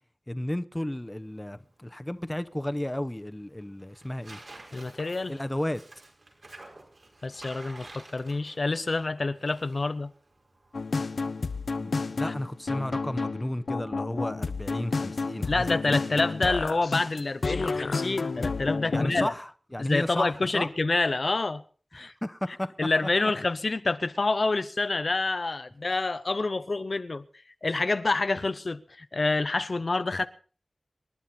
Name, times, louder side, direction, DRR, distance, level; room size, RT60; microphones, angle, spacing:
voice 1, 0.3-4.4 5.3-5.8 11.8-16.0 18.9-20.7 21.9-22.9, left 1 dB, 15° left, 0.8 m, -33 dB
Tearing, 0.8-13.0, right 2 dB, 70° right, 5.1 m, -52 dB
voice 2, 4.7-5.4 7.2-10.1 12.2-12.3 15.5-19.3 19.8-21.6 21.9-22.1 22.8-27.2 27.6-30.3, left 3 dB, 60° left, 0.7 m, -27 dB
sound 1, 10.7-19.3, left 4 dB, 90° left, 0.8 m, -31 dB
27.0 x 11.0 x 4.3 m
wide cardioid pair, 75°, 0 cm